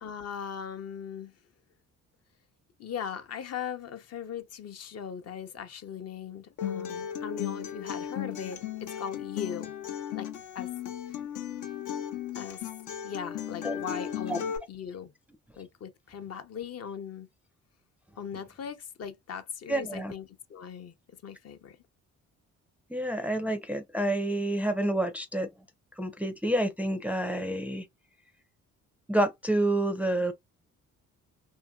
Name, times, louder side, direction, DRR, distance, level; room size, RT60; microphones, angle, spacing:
voice 1, 0.0-1.3 2.8-9.7 10.1-10.3 10.5-10.7 12.3-12.6 13.0-15.1 15.6-17.3 18.2-20.9 21.2-21.8, left 7 dB, 55° left, 0.7 m, -39 dB
Acoustic guitar, 6.6-14.6, left 9 dB, 85° left, 0.8 m, -36 dB
voice 2, 19.7-20.1 22.9-25.5 26.0-27.9 29.1-30.3, right 1 dB, 5° right, 0.4 m, -28 dB
2.8 x 2.7 x 2.3 m
cardioid pair, 90°, 30 cm